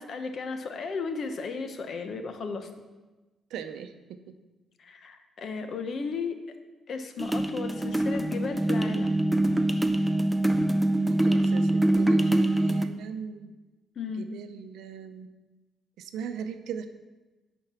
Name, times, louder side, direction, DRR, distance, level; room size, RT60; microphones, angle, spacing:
voice 1, 0.0-2.7 4.8-6.5 6.9-9.1 14.0-14.3, left 4 dB, 55° left, 7 dB, 1.0 m, -35 dB
voice 2, 3.5-4.3 11.1-13.5 14.1-15.3 16.0-16.9, right 7 dB, 85° right, 8 dB, 0.6 m, -39 dB
sound 1, 7.2-12.9, right 1 dB, ahead, 0.6 m, -24 dB
10.5 x 4.4 x 5.8 m, 1.2 s
cardioid pair, 90°, 0 cm